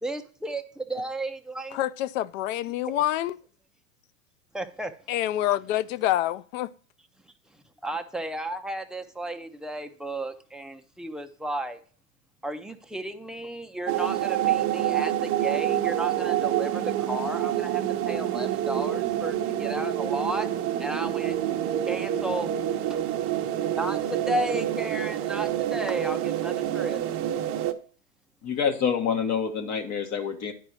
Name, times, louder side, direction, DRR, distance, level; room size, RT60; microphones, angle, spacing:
voice 1, 0.0-1.8 2.8-3.0 4.5-4.9 7.2-7.3 7.8-11.8 12.4-20.5 20.8-21.4 21.8-22.5 22.9-23.0 23.8-27.0, right 1 dB, ahead, 0.5 m, -33 dB
voice 2, 1.7-3.3 5.1-6.7, left 13 dB, 60° left, 0.6 m, -27 dB
sound 1, 13.9-27.7, right 12 dB, 30° right, 0.8 m, -27 dB
voice 3, 28.4-30.5, left 7 dB, 40° left, 1.6 m, -27 dB
10.0 x 4.6 x 6.2 m
hypercardioid pair, 115°, 43 cm